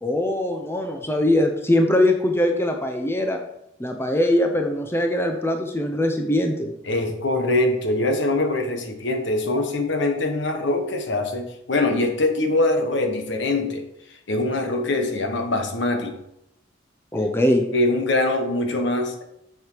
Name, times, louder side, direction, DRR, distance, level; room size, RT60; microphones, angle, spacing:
voice 1, 0.0-3.4 3.8-6.7 17.1-17.7, left 1 dB, 10° left, 4 dB, 0.7 m, -21 dB
voice 2, 6.9-16.2 17.7-19.2, left 2 dB, 60° left, 4 dB, 1.3 m, -23 dB
7.7 x 6.5 x 5.1 m, 0.81 s
head